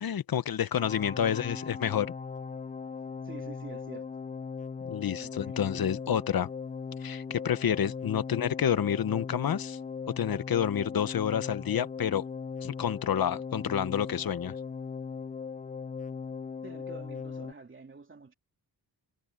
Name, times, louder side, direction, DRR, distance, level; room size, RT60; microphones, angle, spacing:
voice 1, 0.0-2.1 4.9-6.5 7.0-9.8 10.2-12.3 12.6-14.5, left 9 dB, 60° left, 0.9 m, -29 dB
sound 1, 0.7-17.5, left 5 dB, 20° left, 0.4 m, -39 dB
voice 2, 1.2-1.6 3.2-4.1 5.2-5.6 16.6-18.3, right 4 dB, 30° right, 3.0 m, -47 dB
wide cardioid pair, 160°, 40 cm